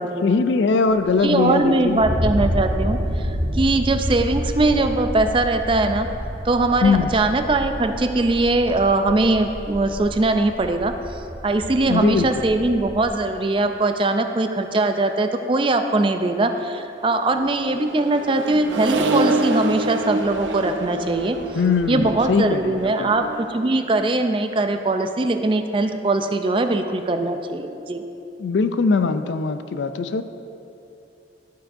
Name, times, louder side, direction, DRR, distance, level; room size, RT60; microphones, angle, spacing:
voice 1, 0.0-2.0 6.8-7.1 11.9-12.5 21.5-23.1 28.4-30.2, left 4 dB, 75° left, 10 dB, 0.4 m, -21 dB
sound 1, 0.9-13.1, equal, 65° right, 1.1 m, -29 dB
voice 2, 1.2-6.1 6.4-21.4 21.9-28.1, right 2 dB, 30° right, 7 dB, 0.4 m, -21 dB
Accelerating revving vroom, 17.3-24.0, right 1 dB, 85° right, 0.6 m, -27 dB
12.5 x 8.8 x 2.6 m, 2.9 s
head